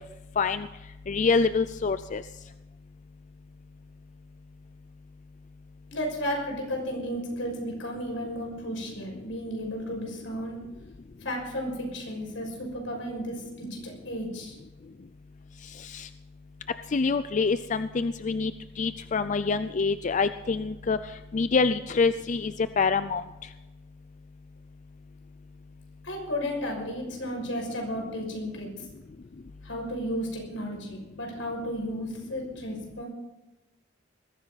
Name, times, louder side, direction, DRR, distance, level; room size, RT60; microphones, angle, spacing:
voice 1, 0.4-0.7 1.1-2.2 15.8-16.1 16.9-21.0 21.3-23.2, left 4 dB, 40° left, 12 dB, 0.4 m, -26 dB
voice 2, 5.9-10.6 11.2-14.6 26.0-28.9 29.6-33.1, equal, 85° left, 1 dB, 6.1 m, -33 dB
21.0 x 14.5 x 4.1 m, 1.0 s
head